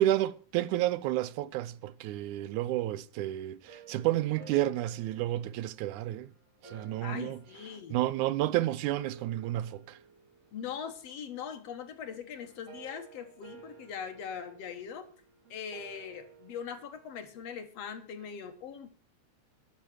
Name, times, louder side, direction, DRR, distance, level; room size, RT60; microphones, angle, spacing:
voice 1, 0.0-6.3 6.6-7.4 7.9-10.0, right 14 dB, 90° right, 2.2 m, -30 dB
sound 1, 3.7-17.1, right 5 dB, 55° right, 4.4 m, -55 dB
voice 2, 7.0-8.0 10.5-15.1 15.5-18.9, left 7 dB, 60° left, 2.3 m, -41 dB
11.5 x 6.4 x 9.2 m
omnidirectional pair, 3.4 m